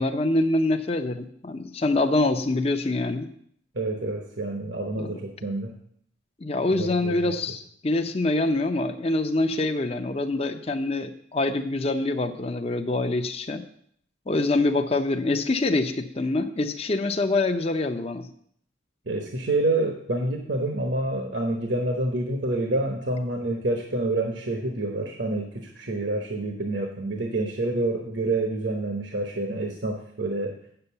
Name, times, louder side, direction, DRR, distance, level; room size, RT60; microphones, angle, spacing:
voice 1, 0.0-3.3 5.0-5.2 6.4-13.6 14.3-18.3, left 2 dB, 30° left, 7 dB, 0.6 m, -25 dB
voice 2, 3.7-5.7 6.8-7.3 19.1-30.5, right 2 dB, 70° right, 2 dB, 1.1 m, -28 dB
7.9 x 6.8 x 6.9 m, 0.67 s
head